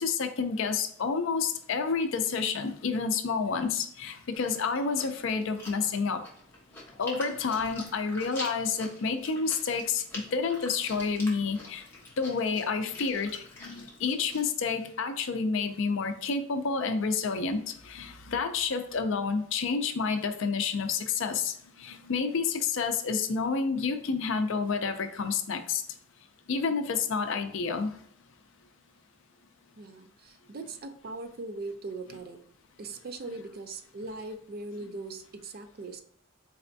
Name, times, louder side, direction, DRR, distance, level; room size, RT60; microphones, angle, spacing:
voice 1, 0.0-6.2 7.0-11.9 12.2-25.8 26.5-28.0 33.3-33.4, left 5 dB, 60° left, 8 dB, 0.4 m, -29 dB
Chewing mastication, 4.3-14.4, left 2 dB, 10° left, 0.9 m, -45 dB
voice 2, 29.8-32.4 32.8-36.0, right 3 dB, 45° right, 7 dB, 0.4 m, -40 dB
4.1 x 3.3 x 2.6 m, 0.65 s
head